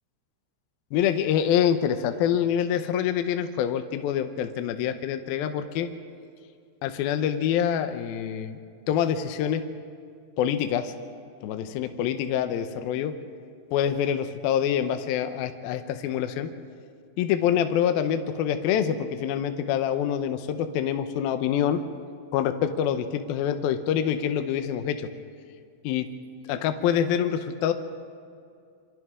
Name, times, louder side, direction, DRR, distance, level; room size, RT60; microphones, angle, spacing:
voice 1, 0.9-5.9 6.8-8.6 8.9-9.6 10.4-10.9 11.4-13.1 13.7-16.5 17.2-21.8 22.3-25.1 25.8-26.1 26.5-27.7, left 9 dB, 85° left, 8 dB, 2.1 m, -26 dB
27.5 x 25.0 x 3.7 m, 2.3 s
omnidirectional pair, 5.5 m